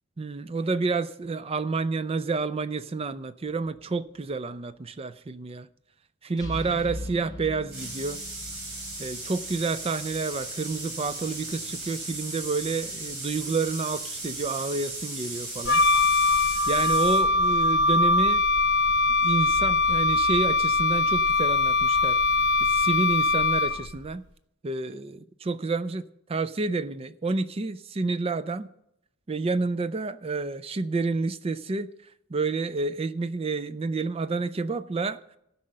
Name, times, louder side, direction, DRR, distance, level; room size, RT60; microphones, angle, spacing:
voice 1, 0.2-5.7 6.2-8.2 9.0-15.8 16.7-18.4 19.2-22.2 22.6-24.2 24.6-28.7 29.3-31.9 32.3-35.2, right 3 dB, 25° right, 0.4 m, -29 dB
sound 1, 3.5-4.0 6.4-10.1, left 1 dB, 20° left, 0.8 m, -40 dB
sound 2, 7.7-17.2, right 2 dB, 60° right, 4.3 m, -36 dB
Wind instrument woodwind instrument, 15.6-24.0, left 3 dB, 55° left, 0.8 m, -22 dB
14.5 x 5.5 x 7.5 m
head